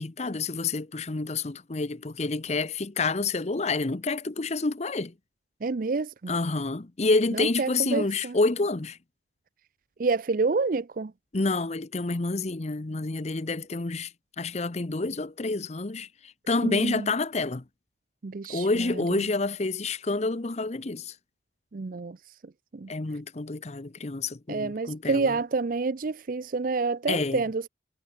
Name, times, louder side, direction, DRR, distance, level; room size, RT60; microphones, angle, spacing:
voice 1, 0.0-5.1 6.3-9.0 11.3-14.1 14.4-17.6 18.5-21.1 22.9-25.4 27.1-27.4, left 3 dB, 40° left, 0.8 m, -28 dB
voice 2, 5.6-6.3 7.3-8.3 10.0-11.1 16.6-17.1 18.2-18.8 21.7-22.2 22.7-22.9 24.5-27.7, right 4 dB, 50° right, 0.5 m, -28 dB
head